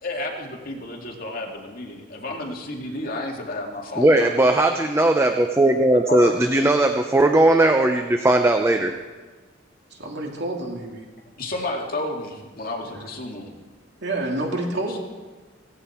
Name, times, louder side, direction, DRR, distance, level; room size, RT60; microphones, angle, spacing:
voice 1, 0.0-4.5 5.6-5.7 6.1-6.4 11.2-13.5 14.9-15.0, left 2 dB, 50° left, 0 dB, 2.4 m, -31 dB
voice 2, 4.0-8.9, right 1 dB, 15° right, 5 dB, 0.7 m, -18 dB
voice 3, 9.9-11.0 12.9-13.1 14.0-15.0, right 2 dB, 60° right, 0 dB, 2.8 m, -28 dB
17.0 x 15.5 x 4.5 m, 1.3 s
head